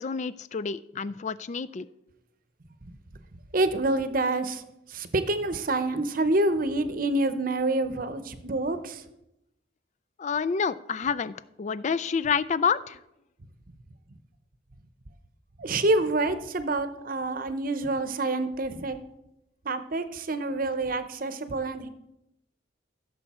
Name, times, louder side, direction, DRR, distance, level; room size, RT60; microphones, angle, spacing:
voice 1, 0.0-1.9 10.2-13.0, left 6 dB, 40° left, 16 dB, 0.3 m, -28 dB
voice 2, 3.5-4.6 4.9-9.0 15.6-19.0 19.6-21.9, right 2 dB, 50° right, 11 dB, 0.8 m, -27 dB
15.5 x 6.9 x 4.3 m, 0.87 s
head